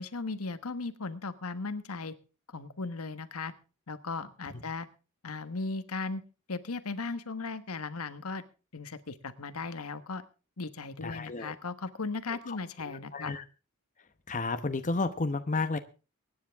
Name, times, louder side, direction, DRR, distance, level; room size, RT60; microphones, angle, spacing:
voice 1, 0.0-2.1 2.5-3.5 3.9-4.9 5.2-6.2 6.5-8.4 8.7-10.2 10.6-13.3, left 3 dB, 75° left, 11 dB, 1.3 m, -37 dB
voice 2, 11.0-11.5 12.5-12.6 12.9-13.4 14.3-15.8, left 3 dB, 35° left, 9 dB, 0.9 m, -32 dB
23.5 x 10.0 x 3.5 m, 0.34 s
head